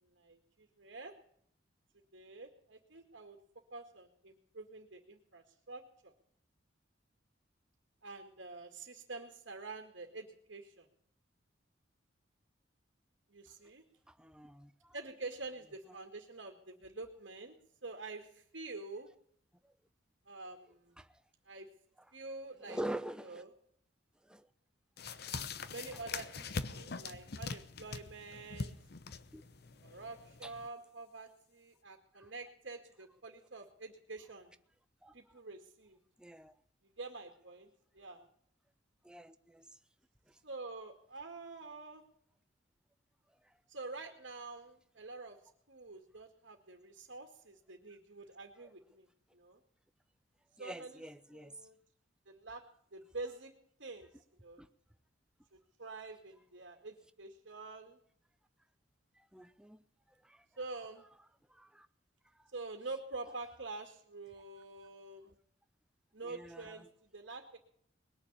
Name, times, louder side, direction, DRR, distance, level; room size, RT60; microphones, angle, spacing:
voice 1, 0.0-1.1 2.1-3.4 3.7-6.1 8.0-10.9 13.3-13.8 14.9-17.6 17.8-19.1 20.3-20.9 21.5-21.7 22.1-22.8 23.2-23.5 25.7-28.8 29.8-34.5 35.1-36.0 37.0-38.2 40.4-42.0 43.7-45.4 45.7-49.1 49.3-49.6 50.6-51.0 51.3-51.8 52.3-52.6 52.9-53.5 53.8-54.1 54.4-54.6 55.5-58.0 60.6-61.1 62.5-65.3 66.1-67.6, right 3 dB, 70° right, 2.2 m, -47 dB
voice 2, 14.1-14.9 15.9-16.0 21.0-21.1 22.6-23.4 24.2-24.5 29.3-29.4 30.4-30.5 32.2-32.3 35.0-35.1 36.2-36.5 38.2-38.3 39.0-39.7 40.3-40.4 48.6-48.7 50.6-51.5 54.6-54.7 59.2-59.8 60.2-60.4 61.5-61.9 66.2-66.9, right 1 dB, 5° right, 0.7 m, -45 dB
sound 1, 25.0-30.7, left 4 dB, 55° left, 0.8 m, -43 dB
21.0 x 7.0 x 8.5 m
head